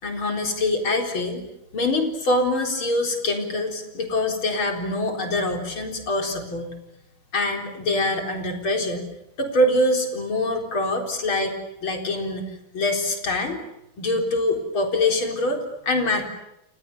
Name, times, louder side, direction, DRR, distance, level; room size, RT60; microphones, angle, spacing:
voice 1, 0.0-1.4 1.7-6.7 7.3-9.1 9.4-11.5 11.8-12.5 12.7-13.6 14.0-16.3, left 2 dB, 75° left, 4 dB, 4.9 m, -24 dB
29.5 x 29.0 x 6.9 m, 0.84 s
omnidirectional pair, 2.3 m